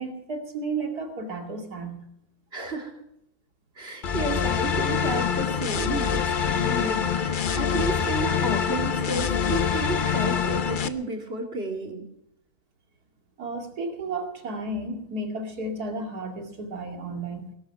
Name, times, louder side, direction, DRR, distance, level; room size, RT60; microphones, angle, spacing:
voice 1, 0.0-2.1 13.4-17.5, right 2 dB, 85° right, 4 dB, 3.0 m, -33 dB
voice 2, 2.5-2.9 3.8-12.0, right 2 dB, 40° right, 3 dB, 2.8 m, -32 dB
sound 1, 4.0-10.9, left 7 dB, 40° left, 0.8 m, -25 dB
18.0 x 12.0 x 6.0 m, 0.75 s
omnidirectional pair, 1.6 m